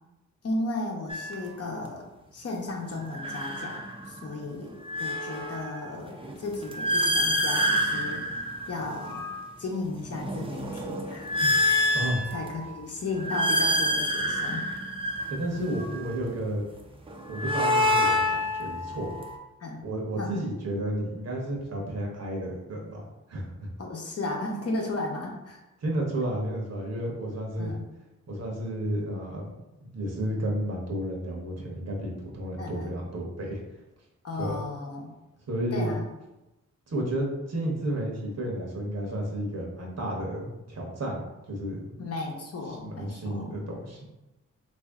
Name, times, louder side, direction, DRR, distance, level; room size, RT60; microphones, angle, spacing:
voice 1, 0.4-2.0 2.3-3.8 4.1-8.2 8.7-9.3 9.6-14.6 19.6-19.8 20.2-20.3 23.8-25.6 27.6-27.9 32.6-33.0 34.2-35.1 35.7-36.1 42.0-43.5, left 2 dB, 50° left, 0 dB, 0.8 m, -35 dB
sound 1, 1.1-1.3 3.0-4.2 4.6-9.5 10.0-12.7 13.1-16.1 17.1-19.3, left 1 dB, 15° right, 0.5 m, -28 dB
voice 2, 11.9-12.2 15.3-16.7 17.3-19.1 19.8-23.7 25.8-27.7 28.3-33.6 34.4-34.6 35.5-35.9 36.9-42.0 42.8-44.0, right 1 dB, 55° right, -1 dB, 1.0 m, -32 dB
3.2 x 2.7 x 3.5 m, 1.0 s
cardioid pair, 80°, 31 cm